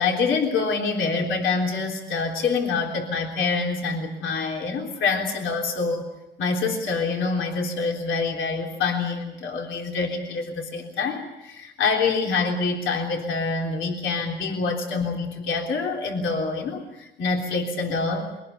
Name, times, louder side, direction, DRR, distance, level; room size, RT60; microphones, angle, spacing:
voice 1, 0.0-6.1 6.4-18.3, left 4 dB, 75° left, 1 dB, 3.5 m, -26 dB
23.0 x 19.0 x 8.3 m, 0.95 s
cardioid pair, 90°, 20 cm